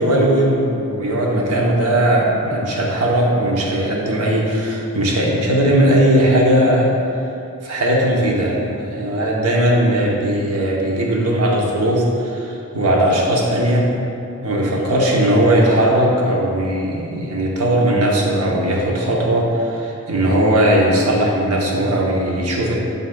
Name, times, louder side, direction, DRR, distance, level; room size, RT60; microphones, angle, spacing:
voice 1, 0.0-6.9 7.6-13.9 14.4-22.8, right 1 dB, 85° right, -3 dB, 0.9 m, -18 dB
11.0 x 3.9 x 2.3 m, 2.7 s
head